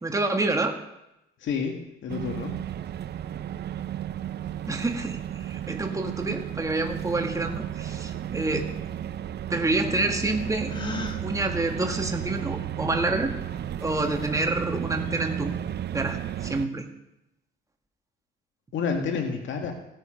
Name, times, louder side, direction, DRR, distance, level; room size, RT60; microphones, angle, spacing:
voice 1, 0.0-0.7 4.7-8.7 9.5-10.7 11.2-13.3 13.8-15.5 15.9-16.8, right 2 dB, 15° right, 4 dB, 1.8 m, -28 dB
voice 2, 1.4-2.6 18.7-19.7, left 5 dB, 75° left, 3 dB, 2.1 m, -29 dB
sound 1, 2.1-16.6, right 10 dB, 55° right, 0.6 m, -33 dB
Gasp, 10.7-11.2, left 2 dB, 25° left, 1.7 m, -33 dB
16.5 x 10.0 x 5.1 m, 0.87 s
cardioid pair, 90°, 20 cm